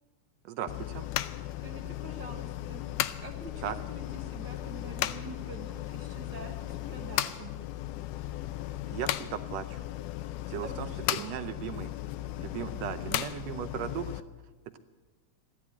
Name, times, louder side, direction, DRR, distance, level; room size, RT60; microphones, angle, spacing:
voice 1, 0.4-1.1 3.6-3.8 8.9-9.8 10.5-11.9 12.4-14.1, right 10 dB, 75° right, 10 dB, 1.5 m, -37 dB
sound 1, 0.7-14.2, left 14 dB, 85° left, 2.2 m, -36 dB
voice 2, 1.6-2.8 3.2-7.5 10.6-11.4, right 2 dB, 50° right, 2 dB, 1.5 m, -45 dB
15.0 x 11.5 x 8.4 m, 1.3 s
omnidirectional pair, 3.6 m